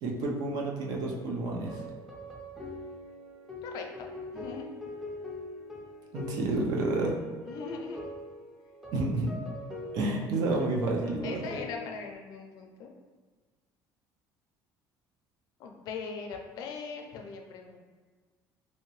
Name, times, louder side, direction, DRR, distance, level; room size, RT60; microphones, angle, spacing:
voice 1, 0.0-1.9 6.1-7.1 8.9-9.4 9.9-11.5, right 2 dB, 60° right, 0 dB, 0.6 m, -30 dB
sound 1, 0.9-12.1, left 1 dB, ahead, 0.5 m, -43 dB
voice 2, 3.6-4.1 4.3-4.7 7.5-8.0 11.2-12.9 15.6-17.8, left 5 dB, 60° left, 2 dB, 0.4 m, -40 dB
2.9 x 2.8 x 3.0 m, 1.4 s
cardioid pair, 165°, 8 cm